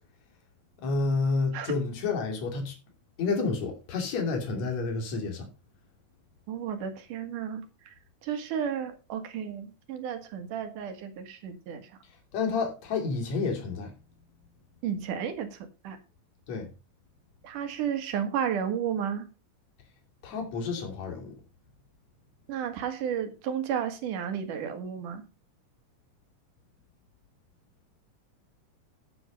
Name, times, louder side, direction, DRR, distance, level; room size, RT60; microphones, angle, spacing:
voice 1, 0.8-2.8 3.2-5.5 12.3-13.9 16.5-16.7 20.2-21.4, left 4 dB, 50° left, 3.8 m, -29 dB
voice 2, 6.5-7.9 8.2-11.9 14.8-15.6 15.8-16.0 17.4-19.3 22.5-25.2, right 8 dB, 65° right, 3.0 m, -32 dB
9.3 x 9.0 x 5.3 m
omnidirectional pair, 4.2 m